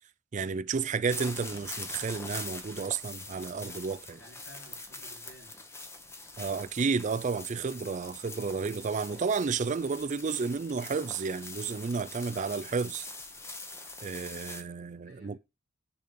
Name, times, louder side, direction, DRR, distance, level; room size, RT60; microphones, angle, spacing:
voice 1, 0.3-4.2 6.4-13.1 14.0-15.4, right 5 dB, 40° right, 0.4 m, -32 dB
sound 1, 1.1-14.6, left 2 dB, 15° left, 1.1 m, -44 dB
voice 2, 4.2-5.7 15.0-15.4, equal, 75° left, 4.2 m, -54 dB
9.6 x 4.2 x 5.2 m
head